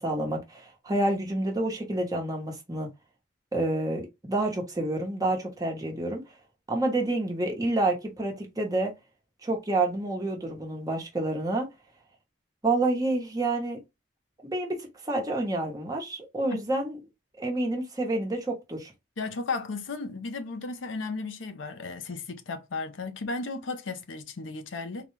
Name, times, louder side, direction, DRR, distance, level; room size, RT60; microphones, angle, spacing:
voice 1, 0.0-2.9 3.5-6.2 6.7-8.9 9.4-11.7 12.6-13.8 14.4-17.0 17.4-18.9, right 2 dB, 20° right, 0.9 m, -28 dB
voice 2, 19.2-25.1, left 3 dB, 80° left, 0.6 m, -34 dB
3.8 x 2.3 x 3.0 m
head